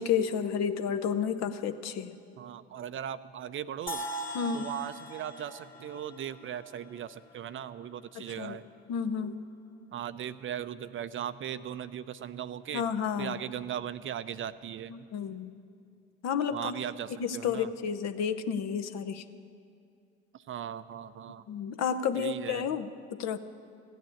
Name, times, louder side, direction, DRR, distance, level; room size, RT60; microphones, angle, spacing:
voice 1, 0.0-2.2 4.3-4.7 8.2-8.6 8.9-9.4 12.7-13.4 14.9-15.5 16.2-16.8 17.2-19.2 21.5-22.9 23.2-23.4, left 7 dB, 55° left, 10 dB, 0.8 m, -31 dB
voice 2, 2.4-4.0 4.5-8.7 9.9-12.8 13.2-14.9 16.5-17.7 20.3-21.5 22.2-22.7, right 10 dB, 40° right, 14 dB, 0.5 m, -38 dB
sound 1, 3.9-7.8, right 1 dB, 25° left, 2.1 m, -41 dB
15.5 x 9.3 x 8.5 m, 2.4 s
hypercardioid pair, 55°, 32 cm